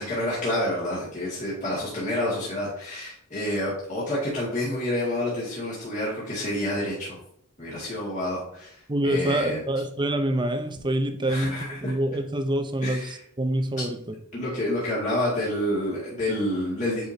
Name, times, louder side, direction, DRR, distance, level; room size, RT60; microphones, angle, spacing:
voice 1, 0.0-7.2 7.6-9.6 11.3-12.0 12.8-13.2 14.3-17.1, left 1 dB, 35° left, -7 dB, 2.1 m, -28 dB
voice 2, 8.9-14.2, right 1 dB, 20° right, 8 dB, 0.6 m, -26 dB
8.8 x 4.9 x 2.8 m, 0.68 s
head